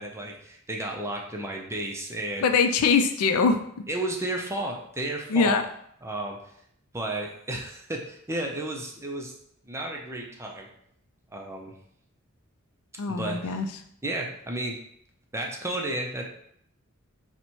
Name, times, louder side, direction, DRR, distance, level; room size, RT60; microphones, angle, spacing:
voice 1, 0.0-2.6 3.9-5.6 6.0-6.4 6.9-9.3 9.7-10.7 11.3-11.7 13.1-13.6 14.0-14.8 15.3-16.3, right 1 dB, 15° right, 0 dB, 0.5 m, -33 dB
voice 2, 2.4-3.6 5.3-5.6 13.0-13.7, left 5 dB, 85° left, 7 dB, 0.4 m, -22 dB
4.1 x 2.2 x 4.4 m, 0.69 s
head